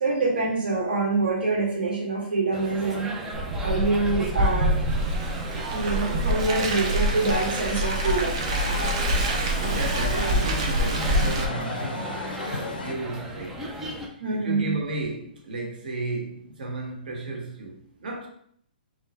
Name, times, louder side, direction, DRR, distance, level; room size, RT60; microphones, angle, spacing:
voice 1, 0.0-3.1 3.6-4.8 5.7-8.5 14.2-14.7, right 3 dB, 80° right, -3 dB, 1.6 m, -25 dB
sound 1, 2.5-14.1, right 1 dB, 5° right, 0.4 m, -36 dB
Car, 3.3-11.4, right 1 dB, 35° right, 0.7 m, -26 dB
sound 2, 7.2-12.9, left 4 dB, 70° left, 0.7 m, -35 dB
voice 2, 9.6-18.3, right 2 dB, 60° right, 1 dB, 1.4 m, -34 dB
3.8 x 3.1 x 4.3 m, 0.63 s
hypercardioid pair, 175°, 5 cm